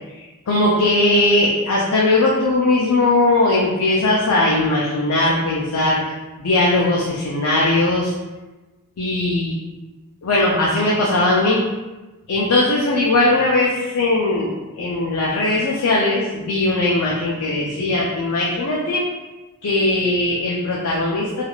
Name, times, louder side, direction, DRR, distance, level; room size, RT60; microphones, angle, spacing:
voice 1, 0.1-6.0 6.4-8.1 9.0-9.5 10.2-11.6 12.3-19.0 19.6-21.4, left 2 dB, 80° left, -4 dB, 0.5 m, -19 dB
3.3 x 2.4 x 2.3 m, 1.1 s
head